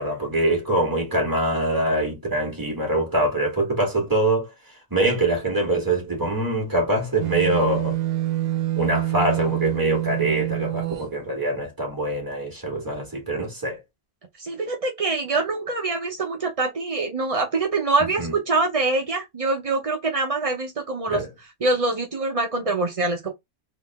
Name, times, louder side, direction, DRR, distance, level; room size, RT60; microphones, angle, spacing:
voice 1, 0.0-4.5 4.9-8.0 8.8-13.8 18.2-18.3 21.1-21.3, right 1 dB, 15° right, 1.8 m, -24 dB
sound 1, 7.2-11.1, right 15 dB, 75° right, 1.1 m, -26 dB
voice 2, 14.4-21.2 21.6-23.3, right 3 dB, 40° right, 0.5 m, -24 dB
3.8 x 2.6 x 3.5 m
omnidirectional pair, 1.6 m